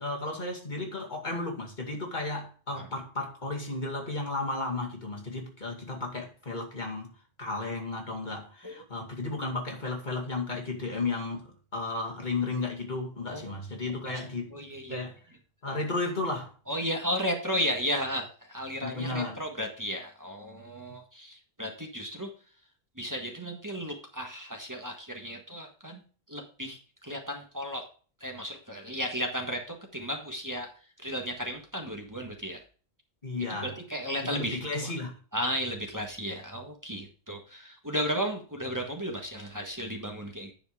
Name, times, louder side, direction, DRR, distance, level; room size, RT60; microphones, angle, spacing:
voice 1, 0.0-7.1 7.4-14.6 14.9-15.2 15.6-16.5 18.8-19.4 20.9-21.0 33.2-33.7 34.2-35.2, left 3 dB, 45° left, 2.5 m, -34 dB
voice 2, 13.3-13.6 14.0-14.2 14.5-15.1 16.7-22.3 22.9-26.0 26.3-27.8 28.2-30.7 31.0-32.6 33.6-34.9 35.3-40.5, equal, 15° right, 1.6 m, -34 dB
10.0 x 5.0 x 4.7 m
omnidirectional pair, 1.1 m